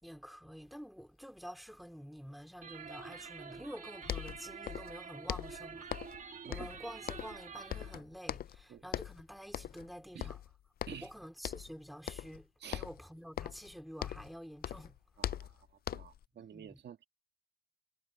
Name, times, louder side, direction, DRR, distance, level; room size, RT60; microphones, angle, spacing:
voice 1, 0.0-10.4 11.0-15.5 16.4-16.8, equal, ahead, 3.6 m, -49 dB
sound 1, 2.6-8.0, right 6 dB, 40° right, 2.2 m, -48 dB
sound 2, 3.7-3.8 4.0-5.0 5.3-6.2 6.5-7.4 7.7-8.6 8.9-9.2 9.5-9.9 10.2-11.1 11.4-11.8 12.1-12.4 12.7-14.4 14.6-16.2, left 11 dB, 50° left, 0.4 m, -41 dB
voice 2, 15.2-15.5 15.9-17.1, right 8 dB, 60° right, 2.0 m, -49 dB
cardioid pair, 90°, 20 cm